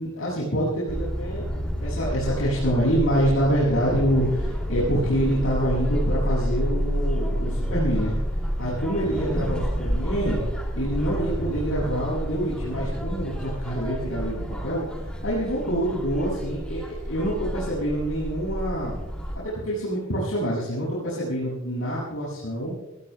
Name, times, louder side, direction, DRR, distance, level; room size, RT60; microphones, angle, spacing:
voice 1, 0.0-1.5 1.8-8.1 8.6-10.4 10.8-19.0 19.4-22.7, equal, 80° left, -8 dB, 7.6 m, -26 dB
sound 1, 0.9-19.4, equal, 5° left, 2.9 m, -29 dB
27.5 x 20.0 x 2.4 m, 1.1 s
head